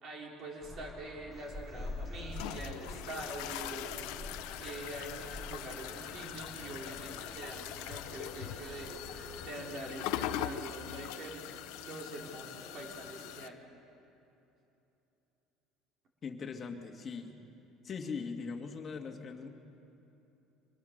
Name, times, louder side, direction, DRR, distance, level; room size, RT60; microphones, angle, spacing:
voice 1, 0.0-3.8 4.5-11.4 11.7-13.6, right 2 dB, 45° right, 0 dB, 4.1 m, -45 dB
sound 1, 0.6-9.8, left 2 dB, ahead, 1.8 m, -47 dB
sound 2, 1.3-13.3, equal, 20° right, 4.5 m, -53 dB
sound 3, 1.8-13.5, left 13 dB, 80° left, 0.8 m, -42 dB
voice 2, 16.2-17.4 17.8-19.5, left 5 dB, 30° left, 3 dB, 2.0 m, -40 dB
25.0 x 20.0 x 6.6 m, 2.9 s
cardioid pair, 130°, 0 cm